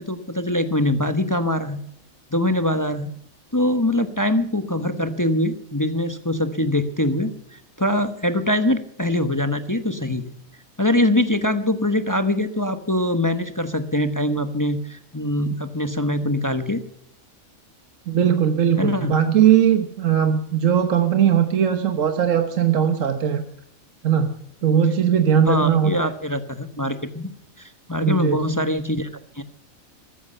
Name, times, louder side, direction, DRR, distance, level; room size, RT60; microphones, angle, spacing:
voice 1, 0.0-1.8 2.3-3.1 3.5-10.3 10.8-16.8 18.8-19.1 25.5-27.3 27.6-29.1 29.3-29.4, left 1 dB, 15° left, 9 dB, 1.0 m, -23 dB
voice 2, 18.1-23.4 24.0-24.3 24.6-25.9 28.0-28.4, right 8 dB, 65° right, 7 dB, 1.5 m, -19 dB
14.5 x 14.0 x 5.5 m, 0.71 s
omnidirectional pair, 1.5 m